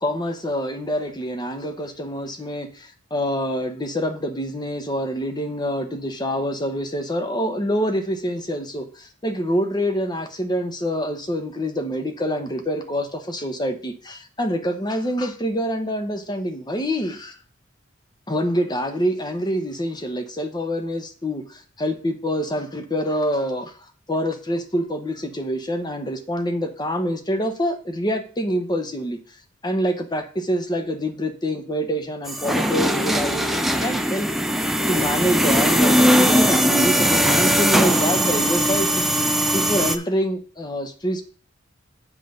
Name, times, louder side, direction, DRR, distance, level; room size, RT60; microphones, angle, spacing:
voice 1, 0.0-17.4 18.3-23.7 24.1-29.2 29.6-34.3 34.6-39.3 39.5-41.2, equal, 20° left, 7 dB, 1.0 m, -26 dB
sound 1, 32.3-40.0, equal, ahead, 0.5 m, -19 dB
7.6 x 3.9 x 6.6 m, 0.41 s
head